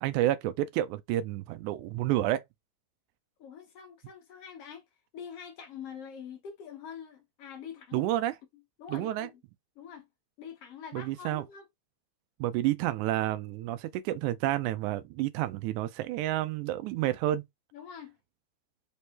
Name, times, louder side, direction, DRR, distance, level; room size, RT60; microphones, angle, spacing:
voice 1, 0.0-2.4 7.9-8.4 8.9-9.3 10.9-11.4 12.4-17.4, right 14 dB, 85° right, 2.0 m, -30 dB
voice 2, 3.4-4.8 5.1-8.0 8.8-9.4 9.8-10.1 10.4-11.6 17.7-18.2, left 7 dB, 65° left, 1.7 m, -45 dB
5.1 x 3.4 x 2.8 m
omnidirectional pair, 3.5 m